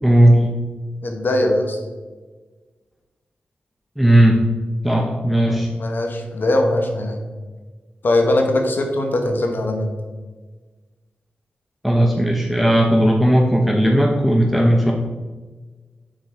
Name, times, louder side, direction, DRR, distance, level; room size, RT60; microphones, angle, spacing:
voice 1, 0.0-0.5 4.0-4.4 4.8-5.7 11.8-14.9, right 1 dB, 5° right, 0 dB, 0.8 m, -16 dB
voice 2, 1.0-1.8 5.4-7.2 8.0-10.0, left 1 dB, 65° left, 3 dB, 1.1 m, -21 dB
6.3 x 4.0 x 4.6 m, 1.3 s
cardioid pair, 55°, 4 cm